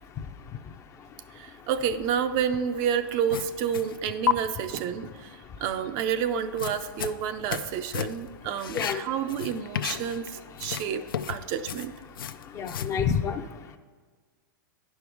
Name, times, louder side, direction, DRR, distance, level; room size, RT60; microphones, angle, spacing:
voice 1, 0.2-1.1 1.6-1.7 8.7-9.0 10.6-10.9 12.3-13.8, left 7 dB, 25° left, 7 dB, 0.5 m, -31 dB
voice 2, 1.4-5.3 5.6-10.2 10.6-11.9, right 8 dB, 40° right, 9 dB, 0.5 m, -29 dB
sound 1, 3.3-4.0 4.3-4.4 6.4-7.7 7.9-8.3 8.6-10.3 10.5-13.0, left 8 dB, 85° left, 0.4 m, -32 dB
9.7 x 5.3 x 4.7 m, 1.5 s
hypercardioid pair, 125°, 11 cm